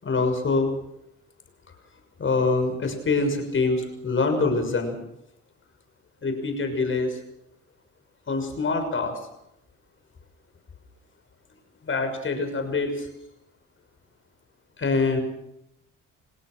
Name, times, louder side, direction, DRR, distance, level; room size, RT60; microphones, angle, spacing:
voice 1, 0.0-0.7 2.2-5.0 6.2-7.2 8.3-9.2 11.8-13.1 14.8-15.2, left 3 dB, 40° left, 6 dB, 6.5 m, -25 dB
28.5 x 18.0 x 6.3 m, 0.82 s
cardioid pair, 90°, 30 cm